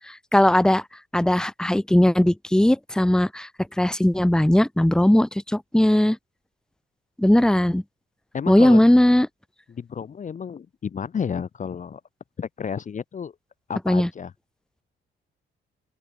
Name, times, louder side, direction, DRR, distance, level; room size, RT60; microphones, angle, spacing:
voice 1, 0.1-0.8 1.1-3.5 3.8-6.2 7.2-7.8 8.5-9.3 13.9-14.1, left 1 dB, 5° left, 1.1 m, -18 dB
voice 2, 8.3-8.9 9.7-12.0 12.4-13.3 13.7-14.3, left 7 dB, 40° left, 0.9 m, -31 dB
open air
cardioid pair, 90°, 20 cm